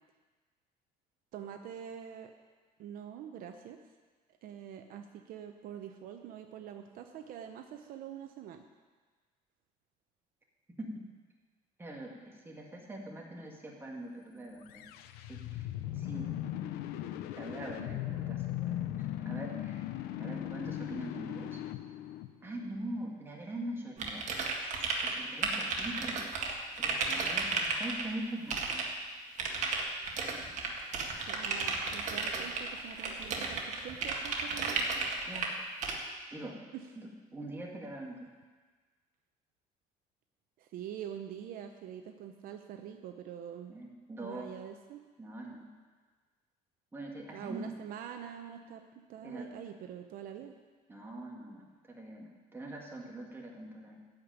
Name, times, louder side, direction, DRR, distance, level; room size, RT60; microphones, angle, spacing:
voice 1, 1.3-2.3 2.8-3.8 4.4-8.6 31.2-34.9 36.7-36.8 40.6-43.7 44.2-45.0 47.3-48.8 49.1-50.5, right 9 dB, 65° right, 5 dB, 0.8 m, -45 dB
voice 2, 11.8-14.8 15.3-15.7 15.9-16.3 17.3-19.9 20.2-21.6 22.4-24.2 24.6-26.2 26.8-28.9 35.2-35.5 36.3-36.6 37.0-38.3 43.7-44.5 45.2-45.7 46.9-47.7 49.2-49.5 50.9-54.0, right 1 dB, 15° right, -1 dB, 2.2 m, -43 dB
sound 1, 14.6-22.8, left 13 dB, 85° left, 0.7 m, -38 dB
sound 2, 24.0-25.1 25.4-28.0 28.5-28.8 29.4-35.5 35.8-36.0, right 4 dB, 50° right, 1.8 m, -33 dB
14.0 x 5.2 x 9.1 m, 1.4 s
cardioid pair, 130°, 16 cm